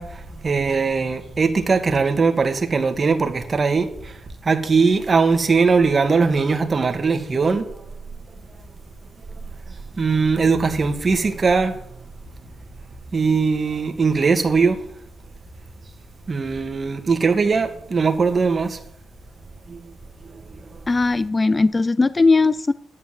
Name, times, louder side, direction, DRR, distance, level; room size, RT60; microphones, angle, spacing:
voice 1, 0.0-4.2 4.4-7.7 10.0-11.8 13.1-14.8 16.3-18.8 19.7-19.9, right 4 dB, 35° right, 2.0 m, -20 dB
voice 2, 20.9-22.7, left 3 dB, 25° left, 0.5 m, -18 dB
12.0 x 10.5 x 7.7 m
cardioid pair, 85°, 0 cm